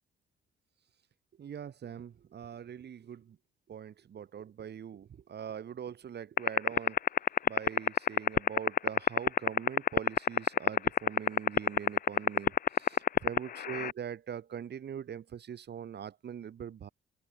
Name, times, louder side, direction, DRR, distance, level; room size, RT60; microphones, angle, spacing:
voice 1, 1.4-3.4 3.7-7.0 7.4-16.9, right 8 dB, 55° right, 5.5 m, -43 dB
sound 1, 6.4-13.9, left 9 dB, 45° left, 0.6 m, -22 dB
open air
cardioid pair, 90°, 20 cm